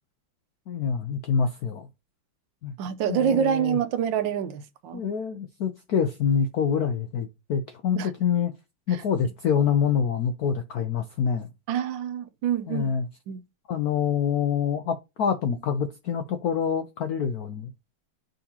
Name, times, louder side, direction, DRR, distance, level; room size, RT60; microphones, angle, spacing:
voice 1, 0.7-1.9 2.6-2.7 3.1-3.8 4.9-8.5 8.9-11.5 12.7-13.1 13.7-17.7, left 7 dB, 75° left, 0.8 m, -26 dB
voice 2, 2.8-5.1 7.9-8.1 8.9-9.0 11.7-12.9 13.3-13.4, right 8 dB, 70° right, 1.3 m, -26 dB
10.0 x 3.9 x 2.8 m
omnidirectional pair, 2.3 m